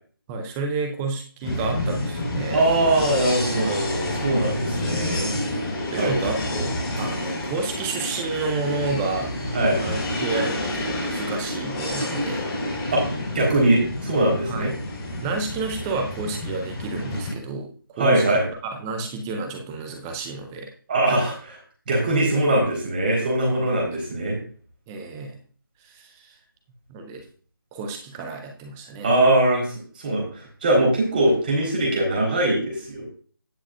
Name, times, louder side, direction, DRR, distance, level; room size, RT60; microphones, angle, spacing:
voice 1, 0.3-2.6 5.9-9.3 9.7-12.4 14.5-14.8 15.2-18.2 18.8-20.7 23.5-23.7 24.9-25.4 25.8-26.3 26.9-27.2 27.7-29.1, right 3 dB, 5° right, 4 dB, 0.5 m, -30 dB
sound 1, 1.4-17.3, left 1 dB, 15° left, 4.1 m, -29 dB
voice 2, 2.5-5.4 6.0-6.3 9.5-9.8 12.9-13.0 13.3-14.7 18.0-18.4 20.9-21.6 21.9-24.4 29.0-29.7 30.0-33.1, right 1 dB, 25° right, -2 dB, 4.2 m, -21 dB
17.5 x 6.3 x 2.5 m, 0.42 s
figure-of-eight pair, 170°, 12 cm